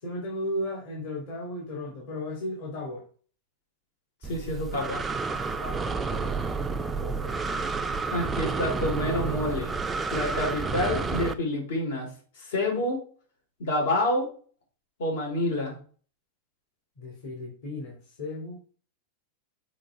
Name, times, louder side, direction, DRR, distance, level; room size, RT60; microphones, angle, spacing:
voice 1, 0.0-3.0 5.6-6.6 7.0-7.3 17.0-18.6, left 1 dB, 45° left, -2 dB, 2.6 m, -35 dB
voice 2, 4.2-5.0 8.1-9.7 10.1-12.1 12.4-13.0 13.6-14.3 15.0-15.8, left 1 dB, 70° left, 0 dB, 4.6 m, -28 dB
Breathing, 4.2-11.3, right 4 dB, 10° right, 0.4 m, -30 dB
7.7 x 4.6 x 4.9 m, 0.42 s
supercardioid pair, 175°, 0 cm